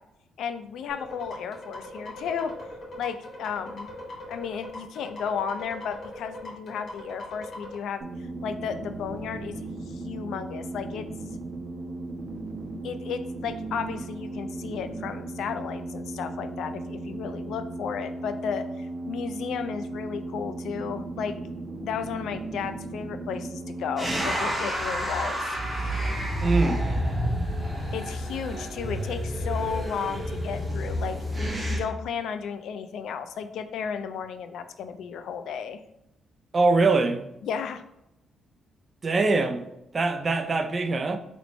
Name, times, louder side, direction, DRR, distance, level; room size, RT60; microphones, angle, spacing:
voice 1, 0.4-2.5 3.0-3.9 4.3-8.0 8.4-9.6 9.9-11.1 12.8-21.4 21.8-25.6 27.9-35.8 37.4-37.8, left 7 dB, 75° left, 0.3 m, -34 dB
sound 1, 0.9-7.7, left 1 dB, 50° left, 1.1 m, -40 dB
sound 2, 8.0-24.1, right 2 dB, 70° right, 0.7 m, -36 dB
sound 3, 24.0-31.8, equal, 10° right, 0.9 m, -29 dB
voice 2, 26.4-26.8 36.5-37.2 39.0-39.7 39.9-41.2, right 3 dB, 30° right, 0.3 m, -23 dB
3.1 x 3.0 x 4.0 m
cardioid pair, 140°, 0 cm